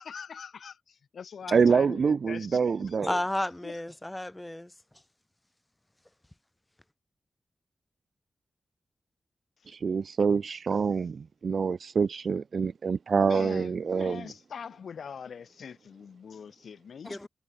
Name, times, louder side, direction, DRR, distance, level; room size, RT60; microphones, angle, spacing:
voice 1, 0.0-3.0 3.6-3.8 13.2-17.3, left 6 dB, 80° left, 6.9 m, -43 dB
voice 2, 1.5-3.1 9.7-14.3, right 5 dB, 60° right, 2.1 m, -26 dB
voice 3, 3.0-4.7 17.0-17.3, left 1 dB, 10° left, 6.5 m, -32 dB
wide cardioid pair, 130°, 0 cm